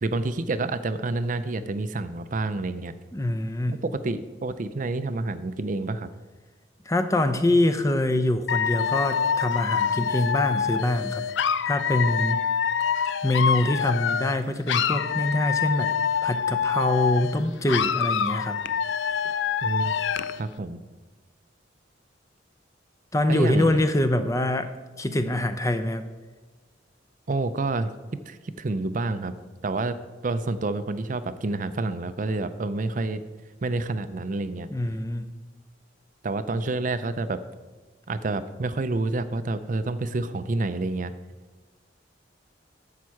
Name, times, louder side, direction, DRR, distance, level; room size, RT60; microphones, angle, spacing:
voice 1, 0.0-3.0 3.7-6.1 19.6-19.9 20.4-20.8 23.3-23.9 27.3-27.9 28.3-29.3 29.6-30.0 30.2-33.2 33.6-34.7 36.2-37.4 38.1-41.1, right 2 dB, 45° right, 11 dB, 0.5 m, -28 dB
voice 2, 3.1-3.8 6.9-11.2 11.6-12.4 13.2-15.9 16.2-18.6 23.1-24.7 25.0-26.0 34.7-35.3, left 1 dB, 15° left, 9 dB, 0.5 m, -24 dB
Dog / Alarm, 8.5-14.4 14.7-17.4 17.7-20.4, left 7 dB, 70° left, 0.4 m, -26 dB
10.5 x 7.3 x 4.7 m, 1.3 s
head